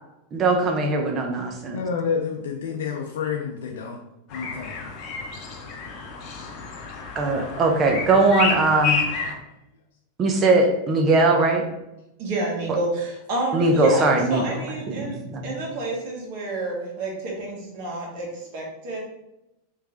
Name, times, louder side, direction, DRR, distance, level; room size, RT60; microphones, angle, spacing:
voice 1, 0.3-1.8 7.1-9.0 10.2-11.6 13.5-14.6 14.9-15.6, right 2 dB, 30° right, 3 dB, 0.7 m, -20 dB
voice 2, 1.7-4.0 4.3-4.9, left 6 dB, 80° left, 1 dB, 0.5 m, -29 dB
sound 1, 4.3-9.3, left 5 dB, 45° left, 0.8 m, -30 dB
voice 3, 12.2-15.2 15.4-19.0, right 2 dB, 55° right, -2 dB, 1.5 m, -29 dB
3.3 x 3.2 x 3.6 m, 0.89 s
supercardioid pair, 130°, 0 cm